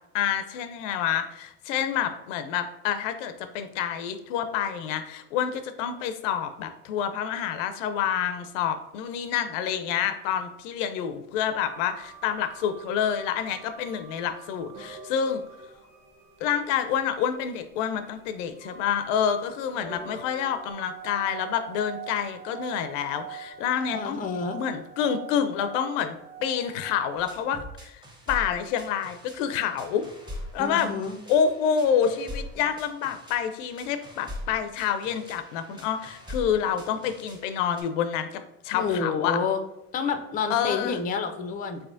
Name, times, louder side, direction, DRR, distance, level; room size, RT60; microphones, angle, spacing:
voice 1, 0.1-15.4 16.4-24.2 24.5-30.0 30.5-30.9 31.3-39.4 40.5-41.0, left 8 dB, 85° left, 9 dB, 0.5 m, -28 dB
sound 1, 11.6-27.7, right 7 dB, 55° right, 0.9 m, -45 dB
voice 2, 23.9-24.6 30.6-31.2 38.7-39.6 39.9-41.8, left 5 dB, 25° left, 6 dB, 0.4 m, -29 dB
sound 2, 27.2-37.8, left 1 dB, 10° right, 0.8 m, -42 dB
3.9 x 3.4 x 2.5 m, 0.87 s
supercardioid pair, 100°, 37 cm